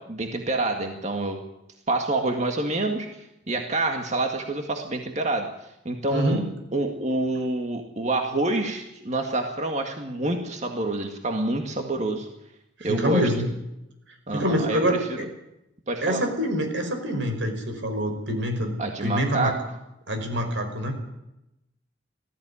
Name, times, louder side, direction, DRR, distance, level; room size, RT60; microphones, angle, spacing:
voice 1, 0.0-1.4 1.9-5.5 5.9-6.4 6.7-12.3 12.8-13.3 14.3-15.3 15.9-16.2 18.8-19.6, right 2 dB, 40° right, 4 dB, 2.0 m, -27 dB
voice 2, 6.1-6.4 12.8-13.5 14.3-15.0 16.0-18.7 19.0-19.5 20.1-21.0, equal, 85° right, 6 dB, 5.1 m, -25 dB
19.5 x 14.5 x 9.9 m, 0.88 s
head